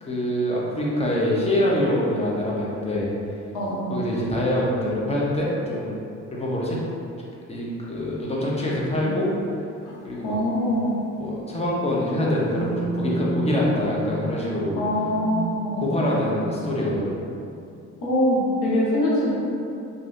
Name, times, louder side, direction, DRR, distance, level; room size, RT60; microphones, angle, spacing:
voice 1, 0.0-3.1 3.9-5.9 6.3-6.8 7.5-9.3 10.0-10.4 11.1-14.8 15.8-17.1, left 1 dB, 20° left, -5 dB, 0.7 m, -25 dB
voice 2, 3.5-3.9 9.0-9.2 9.8-10.9 14.8-15.8 18.0-19.3, left 1 dB, 90° left, -8 dB, 0.9 m, -24 dB
sound 1, 8.1-8.2 9.2-9.5 9.7-9.8 10.3-10.5 11.5-17.2, right 2 dB, 50° left, 1.1 m, -32 dB
3.1 x 2.6 x 2.5 m, 2.6 s
cardioid pair, 90°, 30 cm